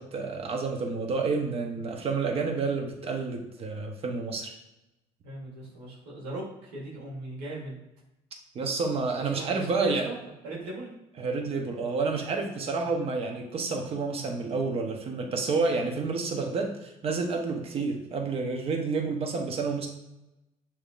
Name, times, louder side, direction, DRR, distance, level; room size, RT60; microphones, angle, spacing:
voice 1, 0.0-4.5 8.5-10.1 11.2-19.9, right 4 dB, 50° right, 3 dB, 0.9 m, -29 dB
voice 2, 5.2-7.8 9.3-10.2 10.4-10.9, right 1 dB, 90° right, -3 dB, 1.6 m, -38 dB
6.6 x 2.9 x 2.5 m, 0.92 s
supercardioid pair, 80°, 13 cm